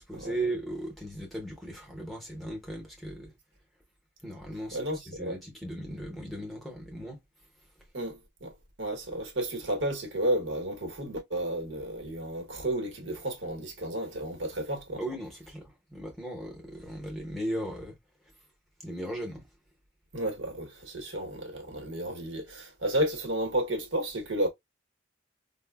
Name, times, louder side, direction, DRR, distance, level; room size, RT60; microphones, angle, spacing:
voice 1, 0.1-3.3 4.2-7.2 15.0-18.0 18.8-19.5, right 1 dB, ahead, 0.7 m, -37 dB
voice 2, 4.7-5.4 7.9-8.5 8.8-15.0 20.1-24.5, right 1 dB, 75° right, 1.0 m, -32 dB
4.7 x 2.0 x 2.2 m
head